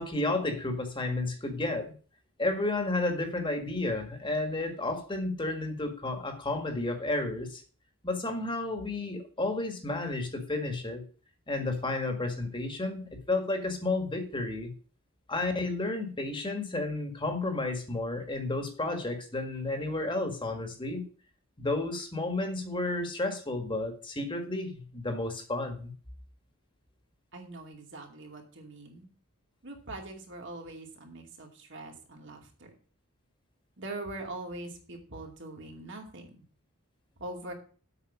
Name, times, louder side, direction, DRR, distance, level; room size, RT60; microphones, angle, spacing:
voice 1, 0.0-1.9 2.4-7.6 8.0-11.0 11.5-14.7 15.3-21.0 21.6-25.9, left 2 dB, 25° left, 5 dB, 1.7 m, -32 dB
voice 2, 27.3-29.1 29.6-32.7 33.8-36.4 37.2-37.5, right 2 dB, 55° right, 2 dB, 2.5 m, -42 dB
8.1 x 6.2 x 7.2 m, 0.40 s
head